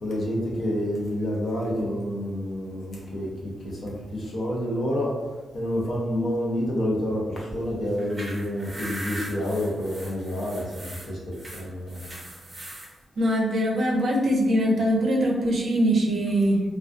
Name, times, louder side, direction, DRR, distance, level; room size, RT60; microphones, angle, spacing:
voice 1, 0.0-5.1 5.5-12.0, equal, 50° left, -3 dB, 0.6 m, -28 dB
sound 1, 7.9-12.9, right 1 dB, 20° right, 0.6 m, -39 dB
voice 2, 13.2-16.6, equal, 60° right, -1 dB, 0.5 m, -22 dB
2.3 x 2.2 x 2.5 m, 1.2 s
wide cardioid pair, 140°, 0 cm